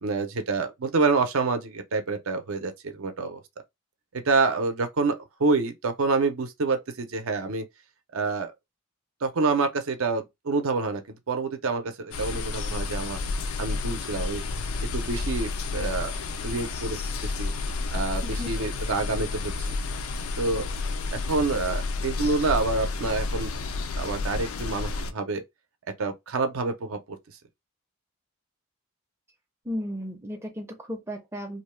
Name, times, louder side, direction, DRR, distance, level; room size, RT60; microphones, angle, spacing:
voice 1, 0.0-3.4 4.1-7.6 8.1-8.5 9.2-13.2 13.6-14.4 14.8-16.1 16.4-17.5 17.9-19.8 20.4-20.7 21.1-23.5 24.0-25.4 26.0-27.2, right 3 dB, 80° right, 0.6 m, -27 dB
sound 1, 12.1-25.1, left 3 dB, 80° left, 0.4 m, -31 dB
voice 2, 29.6-31.6, equal, 10° right, 0.4 m, -34 dB
2.6 x 2.2 x 3.1 m
head